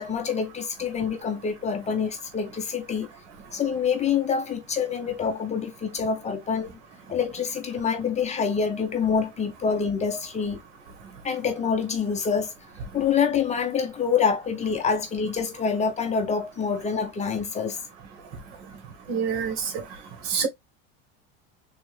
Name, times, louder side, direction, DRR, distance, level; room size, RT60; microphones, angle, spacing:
voice 1, 0.0-3.1 3.5-6.7 7.1-10.6 11.2-12.5 12.9-17.8, left 6 dB, 20° left, 0.7 m, -26 dB
voice 2, 19.1-19.7 20.3-20.5, right 6 dB, 85° right, 1.6 m, -26 dB
3.5 x 3.4 x 3.2 m
cardioid pair, 155°, 35 cm